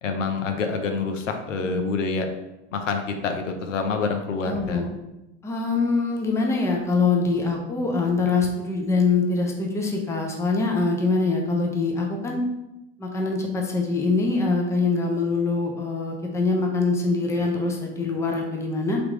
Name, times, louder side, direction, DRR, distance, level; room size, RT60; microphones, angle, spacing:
voice 1, 0.0-2.3 2.7-4.9, left 4 dB, 85° left, 5 dB, 0.7 m, -27 dB
voice 2, 4.4-4.9 5.4-12.4 13.0-19.0, left 3 dB, 10° left, 1 dB, 0.6 m, -24 dB
3.5 x 3.0 x 3.6 m, 0.93 s
hypercardioid pair, 105°, 36 cm